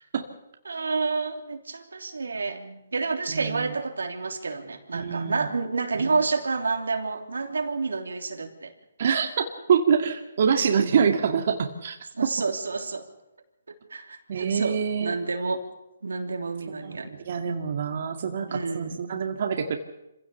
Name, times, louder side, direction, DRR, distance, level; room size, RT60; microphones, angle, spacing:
voice 1, 0.6-8.7 12.1-13.1 13.9-15.6 16.0-17.1 18.5-19.0, right 4 dB, 90° right, 4 dB, 3.2 m, -29 dB
voice 2, 3.3-3.7 4.9-5.5 6.0-6.1 9.0-12.0 12.2-12.3 14.3-15.1 16.8-19.8, right 6 dB, 55° right, 3 dB, 2.1 m, -25 dB
27.0 x 16.5 x 7.1 m, 0.94 s
hypercardioid pair, 150°, 0 cm